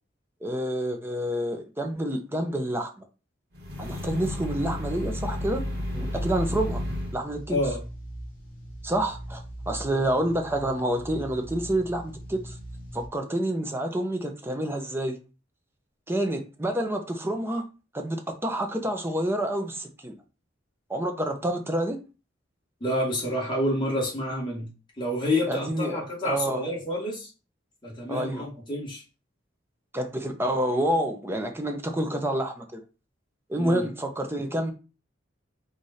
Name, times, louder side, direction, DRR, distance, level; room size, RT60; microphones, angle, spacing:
voice 1, 0.4-2.9 3.8-5.6 5.9-6.8 7.1-7.6 8.8-12.5 12.9-15.1 16.1-17.6 17.9-20.1 20.9-22.0 25.5-26.6 28.1-28.5 29.9-32.8 33.5-34.7, right 1 dB, 10° right, 0.7 m, -28 dB
sound 1, 3.5-7.2, left 1 dB, 60° right, 1.4 m, -32 dB
sound 2, 5.8-13.1, right 1 dB, 50° left, 2.4 m, -41 dB
voice 2, 7.5-7.8 22.8-24.7 25.0-27.3 27.8-29.0 33.6-33.9, left 1 dB, 25° left, 1.8 m, -28 dB
4.9 x 2.5 x 4.2 m
head